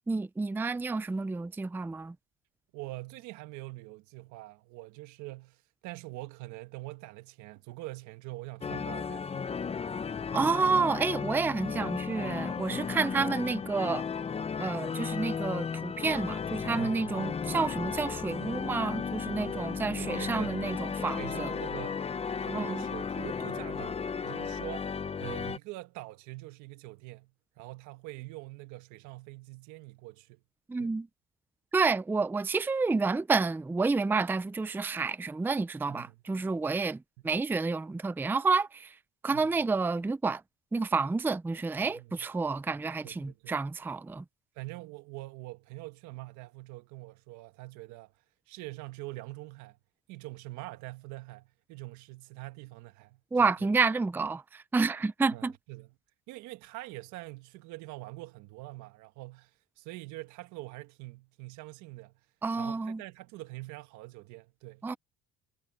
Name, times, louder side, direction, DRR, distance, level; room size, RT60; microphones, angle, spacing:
voice 1, 0.1-2.1 10.3-14.1 14.6-21.5 22.5-22.9 30.7-31.1 31.7-38.9 39.2-40.4 40.7-44.2 53.3-55.5 62.4-63.0 64.8-65.0, right 4 dB, 5° right, 0.5 m, -29 dB
voice 2, 2.7-9.5 12.6-12.9 16.7-17.3 20.0-20.6 21.2-22.1 22.4-30.4 30.8-30.9 35.9-36.2 39.3-39.6 41.8-42.3 43.0-43.6 44.5-48.1 48.5-49.8 50.1-53.5 55.3-55.9 56.3-62.2 62.6-64.9, right 20 dB, 80° right, 1.5 m, -44 dB
sound 1, 8.6-25.6, left 6 dB, 20° left, 0.8 m, -34 dB
cardioid pair, 130°, 29 cm